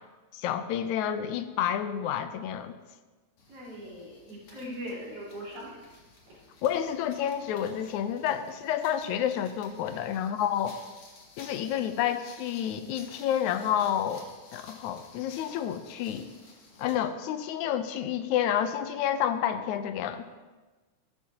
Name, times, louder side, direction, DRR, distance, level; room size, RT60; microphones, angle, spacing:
voice 1, 0.3-2.8 6.6-10.7 11.4-16.3 16.8-20.2, left 9 dB, 75° left, 9 dB, 2.0 m, -29 dB
sound 1, 3.4-17.1, left 3 dB, 55° left, 2.9 m, -54 dB
voice 2, 3.5-5.8, equal, 75° right, -9 dB, 5.5 m, -40 dB
15.0 x 13.0 x 2.9 m, 1.3 s
omnidirectional pair, 3.6 m